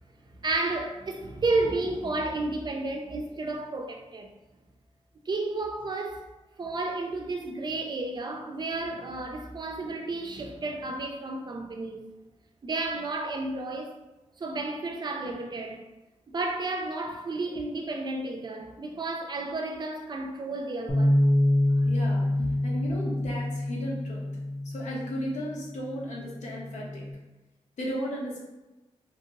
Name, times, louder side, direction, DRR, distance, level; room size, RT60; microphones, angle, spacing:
voice 1, 0.4-4.3 5.3-6.3 6.6-12.1 12.6-14.0 14.4-15.9 16.3-21.2 21.8-21.9, right 2 dB, 40° right, 0.4 m, -32 dB
Bass guitar, 20.9-27.1, left 1 dB, 15° left, 0.5 m, -27 dB
voice 2, 21.8-24.2 24.6-27.0 27.8-28.4, equal, 85° left, 0.8 m, -35 dB
2.8 x 2.6 x 2.8 m
wide cardioid pair, 115°, 12 cm